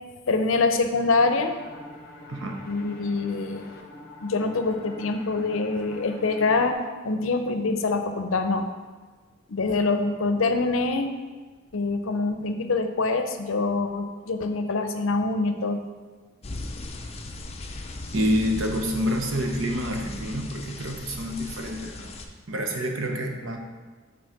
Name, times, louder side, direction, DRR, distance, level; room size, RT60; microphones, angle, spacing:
voice 1, 0.3-1.5 2.7-3.6 4.2-6.8 7.0-8.7 9.5-11.1 11.7-15.8, left 3 dB, 70° left, 7 dB, 0.6 m, -25 dB
sound 1, 1.2-6.7, left 1 dB, 50° left, 0.9 m, -44 dB
sound 2, 16.4-22.3, left 2 dB, 30° left, 0.5 m, -38 dB
voice 2, 18.1-22.1 22.5-23.6, equal, 70° right, 3 dB, 0.9 m, -27 dB
6.2 x 4.0 x 5.8 m, 1.4 s
head